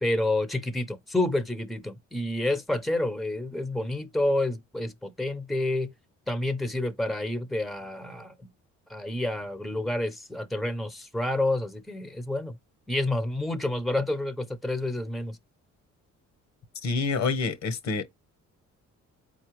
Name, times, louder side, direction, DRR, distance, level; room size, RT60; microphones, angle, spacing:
voice 1, 0.0-5.9 6.3-8.3 8.9-12.5 12.9-15.4, left 1 dB, ahead, 0.8 m, -29 dB
voice 2, 16.8-18.0, left 4 dB, 65° left, 1.2 m, -27 dB
4.2 x 3.7 x 3.1 m
cardioid pair, 90°, 30 cm